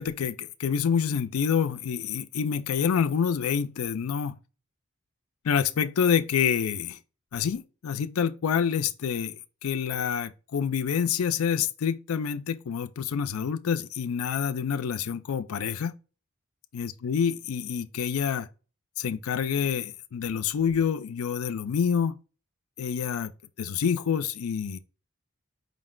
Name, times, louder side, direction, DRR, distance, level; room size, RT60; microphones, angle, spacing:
voice 1, 0.0-4.4 5.4-7.0 7.3-9.4 9.6-15.9 16.7-18.5 19.0-22.2 22.8-23.3 23.6-24.8, left 7 dB, 85° left, 0.4 m, -27 dB
5.1 x 2.1 x 3.7 m
head